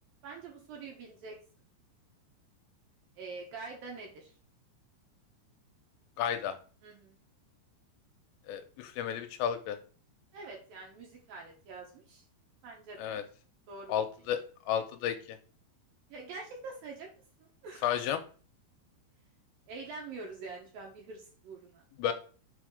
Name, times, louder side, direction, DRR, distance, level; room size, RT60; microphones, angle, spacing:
voice 1, 0.2-1.4 3.2-4.3 6.8-7.2 10.3-12.2 12.6-13.2 13.7-13.9 16.1-17.1 17.6-17.9 19.7-21.8, right 4 dB, 65° right, -1 dB, 2.5 m, -45 dB
voice 2, 6.2-6.6 8.5-9.8 13.0-13.2 13.9-14.4 14.7-15.4 17.8-18.2 22.0-22.1, left 9 dB, 80° left, 8 dB, 2.8 m, -32 dB
6.4 x 4.2 x 4.8 m, 0.40 s
omnidirectional pair, 5.4 m